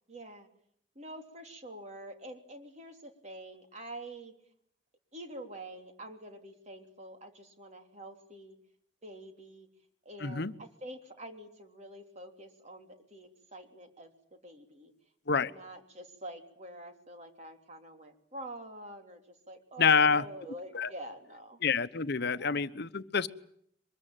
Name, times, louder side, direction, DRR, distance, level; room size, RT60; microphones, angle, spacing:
voice 1, 0.1-0.5 0.9-4.4 5.1-8.6 9.0-9.7 10.0-14.9 15.3-21.6 22.3-22.6, right 1 dB, 40° right, 5 dB, 3.2 m, -46 dB
voice 2, 10.2-10.5 15.3-15.5 19.8-20.2 20.7-20.9 21.6-23.3, left 5 dB, 60° left, 13 dB, 1.0 m, -27 dB
23.5 x 21.0 x 9.1 m, 0.68 s
head